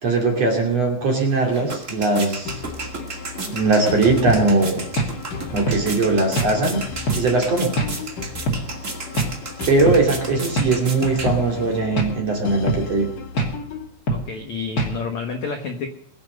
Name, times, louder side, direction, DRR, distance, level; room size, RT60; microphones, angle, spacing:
voice 1, 0.0-2.5 3.5-4.8 5.5-6.9 7.1-7.8 9.7-13.1, right 3 dB, 40° right, 1 dB, 3.0 m, -20 dB
sound 1, 1.1-11.8, right 3 dB, 75° right, 0.7 m, -34 dB
sound 2, 2.5-13.9, left 4 dB, 55° left, 2.8 m, -35 dB
sound 3, 4.3-4.5 5.0-5.1 5.7-5.8 6.4-6.5 7.1-7.3 7.8-7.9 8.5-8.6 9.2-9.4 9.9-10.0 10.6-10.7 11.3-11.4 12.0-12.2 12.7-12.9 13.4-13.5 14.1-14.3 14.8-15.0, right 2 dB, 30° left, 2.0 m, -23 dB
voice 2, 14.1-15.9, left 4 dB, 75° left, 4 dB, 1.6 m, -29 dB
22.5 x 8.0 x 6.5 m, 0.63 s
omnidirectional pair, 5.6 m